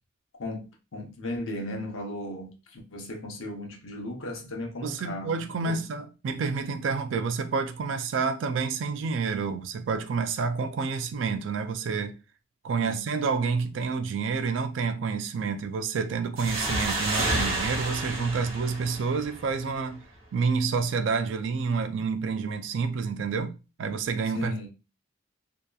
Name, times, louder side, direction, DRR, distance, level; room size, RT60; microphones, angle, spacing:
voice 1, 0.9-5.8 12.7-13.0 24.3-24.7, left 1 dB, 80° left, 0.7 m, -36 dB
voice 2, 4.8-12.1 12.6-20.0 20.3-23.5 23.8-24.5, right 5 dB, 65° right, 0.3 m, -29 dB
sound 1, 16.4-19.8, right 2 dB, 85° right, 1.0 m, -30 dB
2.8 x 2.2 x 2.2 m
head